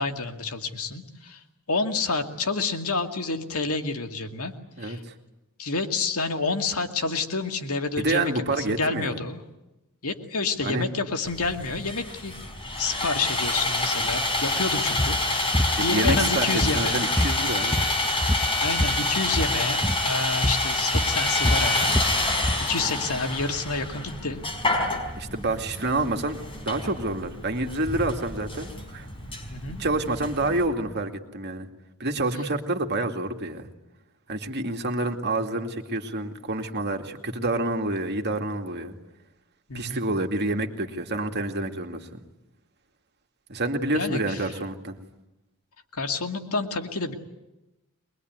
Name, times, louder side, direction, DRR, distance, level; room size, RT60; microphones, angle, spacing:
voice 1, 0.0-1.4 1.7-4.5 4.8-5.0 5.6-9.4 10.0-12.3 12.8-17.1 18.6-21.9 22.6-24.4 29.5-29.8 39.7-40.0 43.9-44.5 45.9-47.1, left 3 dB, 85° left, 5 dB, 2.3 m, -29 dB
voice 2, 4.8-5.1 8.0-9.2 10.6-10.9 15.8-16.5 16.7-17.8 25.2-26.4 26.6-29.1 29.8-31.7 32.0-33.7 34.3-38.9 39.7-42.1 43.5-45.0, right 2 dB, 50° right, 4 dB, 2.4 m, -28 dB
Sawing, 11.3-30.6, left 2 dB, 25° left, 4.7 m, -28 dB
sound 1, 15.0-15.2 15.5-15.7 16.1-16.9 17.2-19.0 19.3-19.5 19.8-20.0 20.4-20.7 20.9-22.6, equal, 10° left, 1.1 m, -25 dB
23.5 x 22.0 x 9.5 m, 0.98 s
head